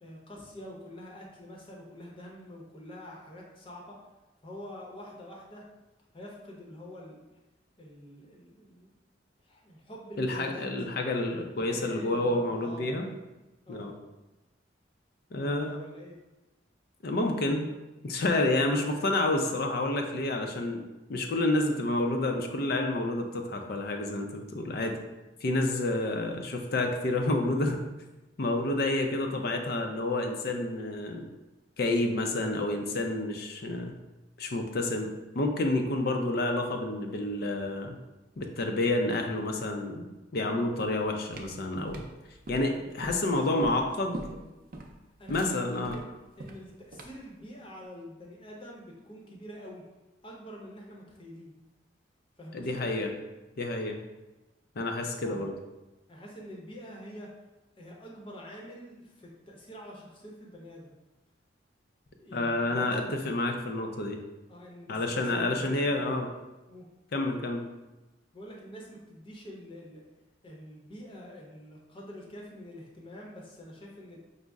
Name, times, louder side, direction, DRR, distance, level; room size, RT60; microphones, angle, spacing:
voice 1, 0.0-4.0 4.4-5.6 6.1-7.2 7.8-8.9 9.4-11.0 11.5-12.9 13.7-13.9 15.4-16.1 42.7-43.9 44.2-44.5 45.2-46.1 46.4-49.8 50.2-51.5 52.4-52.9 55.2-55.5 56.1-57.3 57.8-60.9 62.2-63.3 64.5-66.2 66.7-66.8 68.3-70.0 70.4-74.2, equal, 30° left, -2 dB, 0.8 m, -46 dB
voice 2, 10.2-13.0 13.7-13.9 15.3-15.8 17.0-17.7 18.0-20.8 21.1-25.0 25.4-27.8 28.4-31.2 31.8-33.9 34.4-35.1 35.3-38.0 38.4-42.0 42.5-44.2 45.3-46.0 52.5-53.1 53.6-54.0 54.8-55.5 62.3-64.2 64.9-66.3 67.1-67.6, left 2 dB, 60° left, 4 dB, 0.5 m, -29 dB
sound 1, 41.0-47.3, right 1 dB, 50° right, 0.5 m, -42 dB
5.2 x 2.0 x 3.5 m, 1.1 s
head